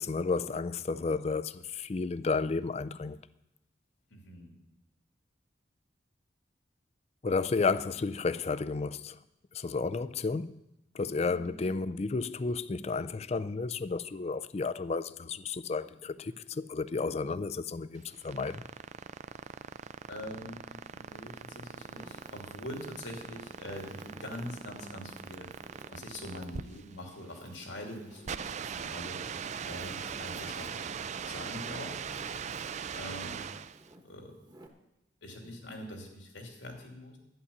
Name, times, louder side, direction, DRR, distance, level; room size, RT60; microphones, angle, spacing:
voice 1, 0.0-3.2 7.2-9.2 9.5-10.6 10.9-18.6, left 4 dB, 35° left, 0.4 m, -32 dB
voice 2, 4.1-4.6 11.1-11.7 20.1-25.5 25.9-29.2 29.7-32.1 32.9-33.5 34.0-34.4 35.2-37.2, left 1 dB, 85° left, 2.8 m, -44 dB
Wind, 15.4-18.3 18.8-20.1 20.7-34.7, right 1 dB, 20° right, 1.2 m, -58 dB
sound 1, 18.0-33.9, right 6 dB, 40° right, 0.4 m, -40 dB
11.5 x 9.9 x 7.1 m
head